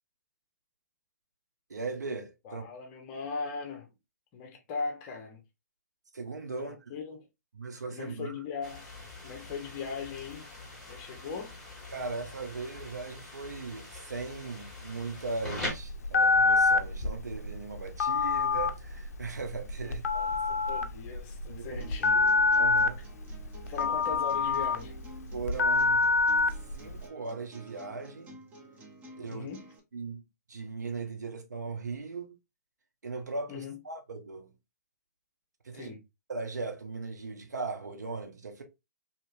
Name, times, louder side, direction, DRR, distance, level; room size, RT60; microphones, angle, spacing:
voice 1, 1.7-2.7 6.1-6.9 7.5-8.4 11.9-20.0 21.5-23.0 25.3-26.2 26.7-28.4 29.2-29.5 29.9-30.2 30.5-32.4 33.0-34.5 35.6-35.9 36.3-38.6, right 4 dB, 75° right, 0.9 m, -38 dB
voice 2, 2.4-3.9 4.3-5.4 6.6-7.2 7.9-8.9 9.2-10.5 10.9-11.5 19.8-22.3 23.7-25.0 29.3-29.6 33.5-33.8 35.8-36.0, left 5 dB, 30° left, 0.8 m, -39 dB
sound 1, 8.6-15.7, left 2 dB, 5° left, 1.5 m, -43 dB
Telephone, 15.6-27.0, left 3 dB, 60° left, 0.4 m, -27 dB
sound 2, 21.8-29.8, right 2 dB, 15° right, 0.6 m, -52 dB
2.8 x 2.8 x 2.4 m
figure-of-eight pair, 135°, 9 cm